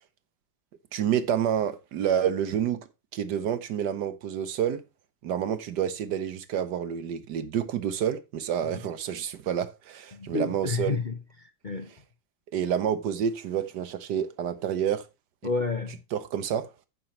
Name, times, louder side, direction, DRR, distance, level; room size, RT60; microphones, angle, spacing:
voice 1, 0.9-2.8 3.1-4.8 5.2-11.0 12.5-15.1 16.1-16.7, right 9 dB, 70° right, 1.3 m, -28 dB
voice 2, 10.1-11.9 15.4-16.0, left 4 dB, 45° left, 0.6 m, -31 dB
14.5 x 5.9 x 3.0 m
omnidirectional pair, 2.0 m